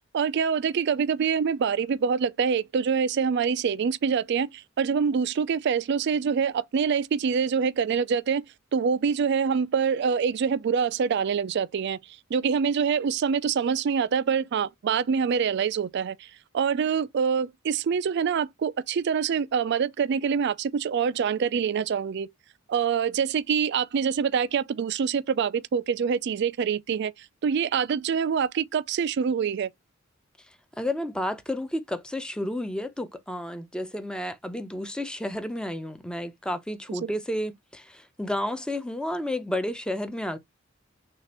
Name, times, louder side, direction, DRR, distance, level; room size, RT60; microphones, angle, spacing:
voice 1, 0.1-8.4 8.7-12.0 12.3-22.3 22.7-29.7 37.0-37.1, right 6 dB, 60° right, 0.4 m, -25 dB
voice 2, 30.8-40.4, left 1 dB, 5° left, 0.6 m, -31 dB
6.4 x 2.5 x 2.9 m
head